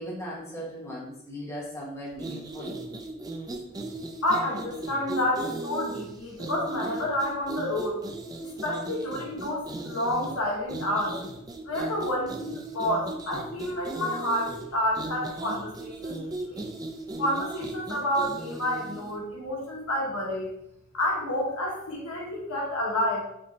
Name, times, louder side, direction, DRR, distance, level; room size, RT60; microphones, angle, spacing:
voice 1, 0.0-2.8, equal, 15° left, -6 dB, 1.1 m, -38 dB
sound 1, 2.1-19.2, right 2 dB, 20° right, 0.3 m, -37 dB
voice 2, 4.2-8.0 8.4-11.2 11.6-16.2 16.4-16.6 17.2-20.5 20.9-23.2, left 1 dB, 90° left, -3 dB, 1.3 m, -29 dB
5.1 x 3.0 x 2.8 m, 0.79 s
head